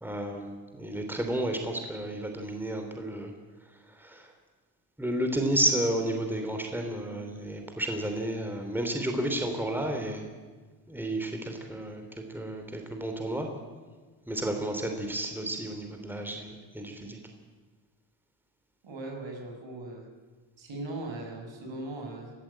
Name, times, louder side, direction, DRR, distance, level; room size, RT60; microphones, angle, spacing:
voice 1, 0.0-3.3 4.0-4.3 5.0-10.3 10.9-12.0 12.3-13.5 14.3-17.2, right 1 dB, 5° right, 4 dB, 3.1 m, -31 dB
voice 2, 18.8-20.0 20.6-22.3, right 2 dB, 65° right, 2 dB, 6.3 m, -39 dB
22.0 x 14.0 x 8.7 m, 1.4 s
cardioid pair, 95°, 48 cm